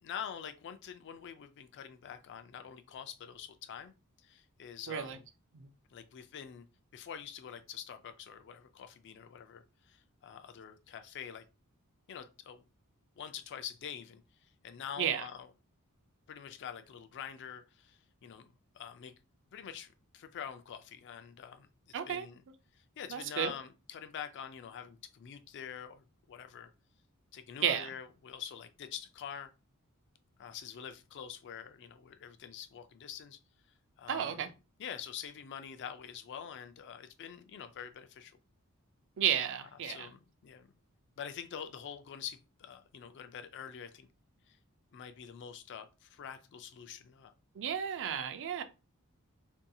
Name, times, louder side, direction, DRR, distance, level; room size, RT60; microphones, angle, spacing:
voice 1, 0.0-3.9 4.2-5.3 5.9-6.7 6.9-11.4 12.1-12.6 13.2-15.5 16.3-19.1 19.5-22.4 22.7-26.7 27.3-29.5 30.4-33.4 34.0-34.4 34.8-38.4 39.8-40.7 41.2-44.1 44.5-44.6 44.9-47.3, left 8 dB, 55° left, 0.4 m, -46 dB
voice 2, 4.9-5.2 5.5-5.7 15.0-15.2 21.9-22.3 23.1-23.5 27.6-27.9 34.1-34.5 39.2-40.0 47.6-48.6, right 9 dB, 60° right, 0.4 m, -32 dB
2.7 x 2.6 x 2.2 m
head